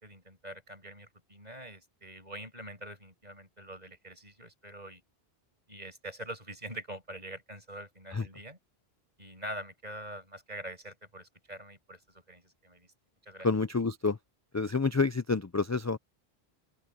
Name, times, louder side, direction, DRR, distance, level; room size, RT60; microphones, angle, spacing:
voice 1, 0.0-5.0 5.7-8.6 9.2-12.0 12.3-12.9 13.2-13.5, right 1 dB, 40° right, 8.3 m, -44 dB
voice 2, 13.4-14.2 14.5-16.0, left 4 dB, 30° left, 0.3 m, -28 dB
open air
omnidirectional pair, 1.0 m